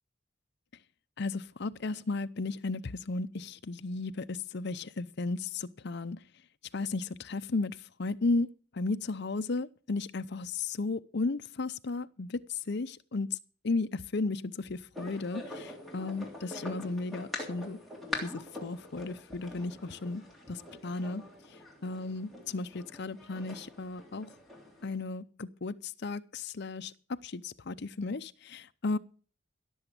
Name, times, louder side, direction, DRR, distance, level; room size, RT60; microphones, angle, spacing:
voice 1, 1.2-6.2 6.7-8.5 8.7-13.3 13.6-17.8 18.2-20.2 20.5-21.2 21.8-24.3 24.8-26.9 27.2-29.0, left 3 dB, 55° left, 0.6 m, -34 dB
sound 1, 14.9-24.9, left 2 dB, ahead, 3.2 m, -44 dB
16.5 x 7.1 x 6.7 m
head